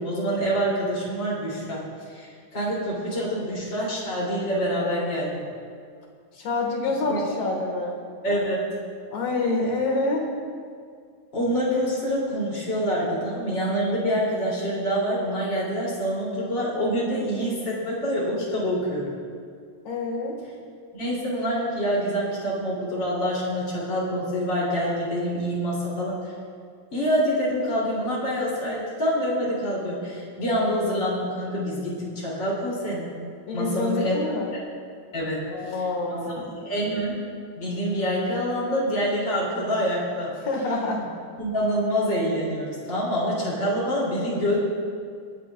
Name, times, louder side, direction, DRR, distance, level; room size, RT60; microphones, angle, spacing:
voice 1, 0.0-1.8 2.1-5.4 7.1-7.2 8.2-8.6 11.3-19.1 20.9-26.2 26.9-33.1 33.5-34.2 35.1-35.4 35.7-35.8 36.1-36.2 36.6-37.2 37.6-40.3 41.4-44.6, equal, 35° left, -5 dB, 3.5 m, -26 dB
voice 2, 6.3-8.0 9.1-10.3 19.8-20.4 33.5-34.5 35.5-36.5 40.4-41.0, left 2 dB, 60° left, -1 dB, 2.8 m, -26 dB
27.5 x 9.9 x 2.4 m, 2.2 s
omnidirectional pair, 3.5 m